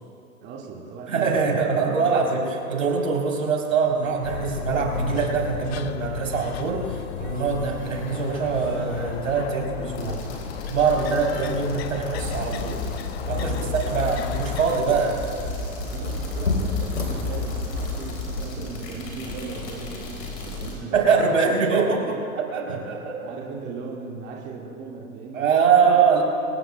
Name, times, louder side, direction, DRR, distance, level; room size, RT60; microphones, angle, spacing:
voice 1, 0.4-2.3 13.4-14.2 15.8-21.4 21.9-22.1 22.7-22.8 23.2-26.1, right 4 dB, 25° right, -2 dB, 1.9 m, -38 dB
voice 2, 1.1-10.2 10.7-13.0 13.3-13.6 13.9-15.2 20.9-23.2 25.3-26.2, right 5 dB, 70° right, 0 dB, 3.7 m, -23 dB
sound 1, 3.9-18.0, left 3 dB, 85° left, 3.7 m, -36 dB
sound 2, 4.2-14.8, left 11 dB, 50° left, 0.6 m, -35 dB
sound 3, 9.9-20.7, left 3 dB, 30° left, 4.3 m, -32 dB
24.5 x 19.5 x 2.3 m, 2.5 s
figure-of-eight pair, 115°, 42 cm